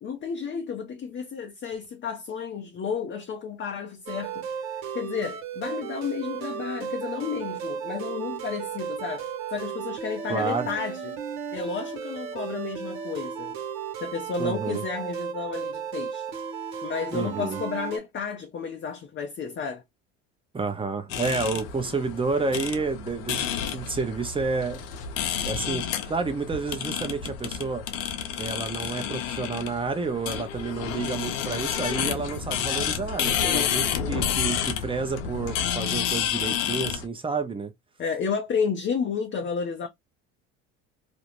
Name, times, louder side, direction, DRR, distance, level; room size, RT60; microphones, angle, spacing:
voice 1, 0.0-4.5 4.9-9.2 9.5-11.2 11.5-13.5 14.0-16.3 16.8-19.8 33.4-34.4 38.0-39.9, left 6 dB, 30° left, 0.6 m, -32 dB
sound 1, 4.1-18.0, right 7 dB, 65° right, 1.1 m, -34 dB
voice 2, 10.3-10.7 14.4-14.8 17.1-17.6 20.5-24.8 25.4-27.8 28.4-37.7, right 4 dB, 15° right, 0.7 m, -30 dB
sound 2, 21.1-37.1, left 8 dB, 75° left, 0.7 m, -30 dB
2.5 x 2.0 x 2.9 m
hypercardioid pair, 80°, 38 cm